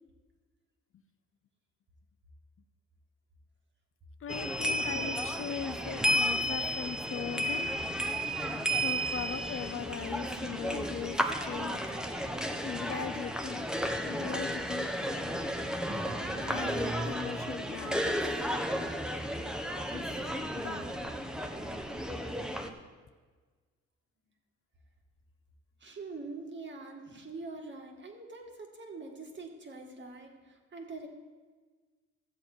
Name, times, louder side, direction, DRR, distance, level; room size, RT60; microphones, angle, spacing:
voice 1, 4.2-7.7 8.8-11.8 12.6-13.7 14.0-14.9 16.3-18.2 18.6-18.9 19.9-20.1 20.6-20.9, left 7 dB, 45° left, 10 dB, 0.6 m, -39 dB
sound 1, 4.3-22.7, equal, ahead, 0.9 m, -33 dB
voice 2, 25.8-31.1, right 3 dB, 40° right, 2 dB, 2.1 m, -44 dB
14.0 x 7.6 x 4.5 m, 1.4 s
cardioid pair, 90°, 30 cm